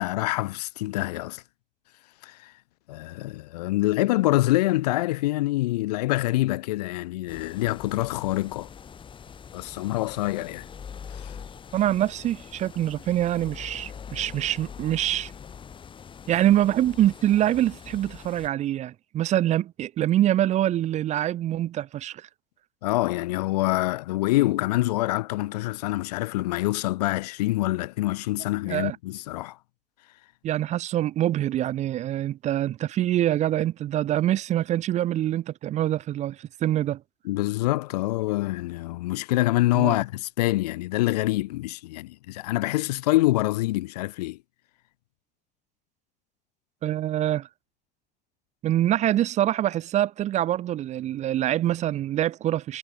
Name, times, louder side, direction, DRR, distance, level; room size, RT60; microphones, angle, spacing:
voice 1, 0.0-1.4 2.2-2.5 2.9-8.7 9.5-10.7 11.1-11.3 22.8-29.6 37.2-44.4, left 18 dB, 75° left, 0.4 m, -26 dB
sound 1, 7.3-18.5, left 7 dB, 25° left, 0.6 m, -43 dB
voice 2, 11.7-15.3 16.3-22.3 28.7-29.0 30.4-37.0 39.7-40.0 46.8-47.5 48.6-52.8, right 12 dB, 35° right, 0.4 m, -25 dB
figure-of-eight pair, 60°, 21 cm